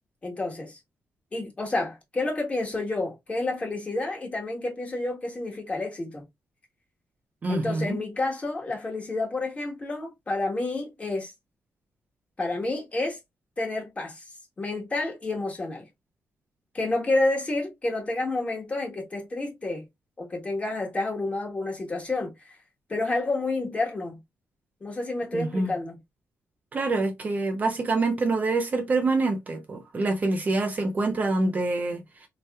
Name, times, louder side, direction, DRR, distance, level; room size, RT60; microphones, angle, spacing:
voice 1, 0.2-0.8 1.3-6.2 7.5-11.3 12.4-13.2 13.6-14.2 14.6-15.9 16.7-19.8 20.2-22.6 22.9-24.2 24.8-26.0, left 2 dB, 25° left, 1.3 m, -29 dB
voice 2, 7.4-8.0 25.3-25.7 26.7-32.0, right 3 dB, 30° right, 0.6 m, -26 dB
3.9 x 2.9 x 2.3 m
wide cardioid pair, 170°, 5 cm